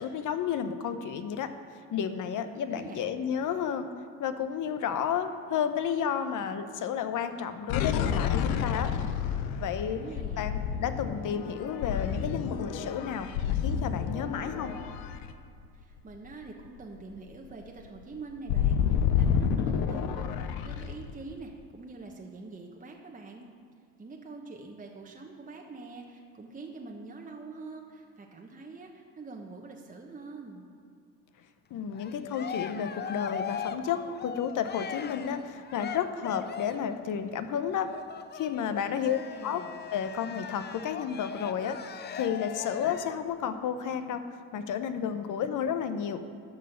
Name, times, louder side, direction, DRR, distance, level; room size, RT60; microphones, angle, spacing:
voice 1, 0.0-1.5 1.9-3.9 4.2-8.9 9.6-10.0 10.4-14.7 31.7-37.9 38.3-39.6 39.9-41.8 42.1-44.2 44.5-46.2, left 8 dB, 60° left, 9 dB, 0.9 m, -32 dB
voice 2, 2.4-3.1 9.9-10.6 15.7-23.5 24.0-30.7 38.8-39.8, right 3 dB, 20° right, 1 dB, 1.1 m, -45 dB
sound 1, 7.7-16.1 16.5-16.7 16.9-21.1, left 8 dB, 90° left, 0.7 m, -29 dB
Cheering, 31.9-36.9 37.7-43.3, left 7 dB, 30° left, 0.5 m, -39 dB
11.5 x 5.6 x 6.6 m, 2.3 s
supercardioid pair, 85°, 35 cm